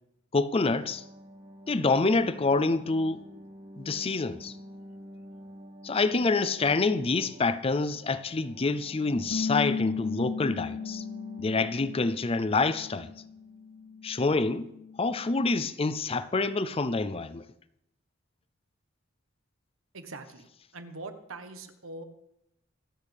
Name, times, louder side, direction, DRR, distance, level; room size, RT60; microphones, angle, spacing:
voice 1, 0.3-1.0 1.7-3.2 3.8-4.5 5.8-11.0 11.4-13.1 14.0-14.7 15.0-17.4, left 3 dB, 30° left, 0.5 m, -27 dB
sound 1, 0.6-13.6 14.0-14.1, equal, 55° right, 2.2 m, -49 dB
Bass guitar, 9.3-15.5, left 5 dB, 80° left, 0.7 m, -36 dB
voice 2, 19.9-22.0, right 3 dB, 85° right, 1.3 m, -43 dB
24.0 x 8.5 x 3.5 m
head